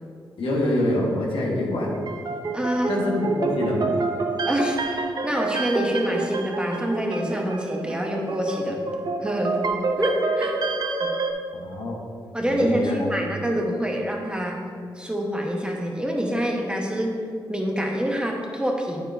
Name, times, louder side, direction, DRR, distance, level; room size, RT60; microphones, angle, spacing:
voice 1, 0.4-1.9 2.9-3.9 11.5-12.0 12.5-12.9, left 1 dB, 75° left, -3 dB, 1.5 m, -25 dB
sound 1, 1.8-11.3, right 3 dB, 50° right, 0.8 m, -28 dB
voice 2, 2.5-2.9 4.5-8.8 9.2-9.6 10.0-10.6 11.0-11.1 12.3-14.6 14.9-17.1 17.5-19.0, equal, 10° right, 0 dB, 1.2 m, -26 dB
8.6 x 6.9 x 2.7 m, 2.2 s
cardioid pair, 55°, 9 cm